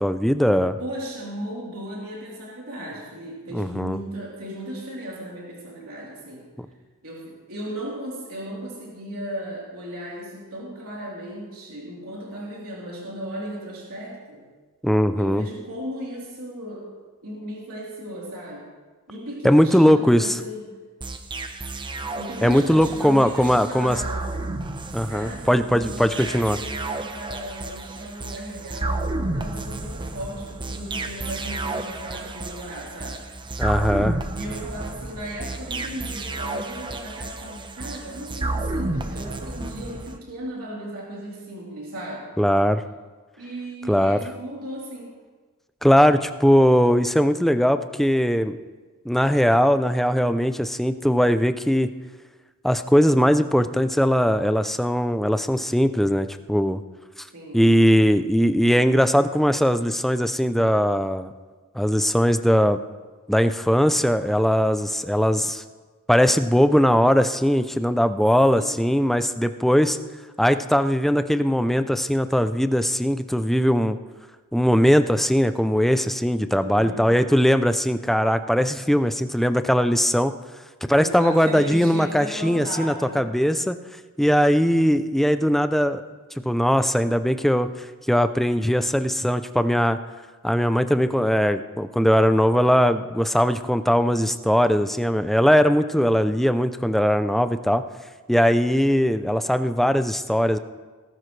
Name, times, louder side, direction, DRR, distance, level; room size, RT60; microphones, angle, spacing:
voice 1, 0.0-0.8 3.5-4.0 6.6-6.7 14.8-15.4 19.4-20.3 22.4-24.0 24.9-26.6 33.6-34.2 42.4-42.8 43.9-44.3 45.8-48.6 49.1-51.9 52.6-56.8 57.5-61.3 61.7-62.8 63.3-65.6 66.1-70.0 70.4-74.0 74.5-80.3 80.9-83.8 84.2-86.0 86.4-87.7 88.1-90.0 90.4-97.8 98.3-100.6, equal, ahead, 10 dB, 0.4 m, -20 dB
voice 2, 0.8-6.4 7.0-14.4 15.2-16.9 17.2-18.7 19.1-20.6 22.2-24.3 25.1-33.2 34.3-42.3 43.4-45.1 57.3-57.6 68.5-68.9 76.6-77.1 81.0-83.3 95.8-96.2, right 1 dB, 70° right, -5 dB, 3.6 m, -36 dB
sound 1, 21.0-40.2, right 2 dB, 20° right, 0.8 m, -31 dB
18.5 x 13.0 x 3.3 m, 1.3 s
head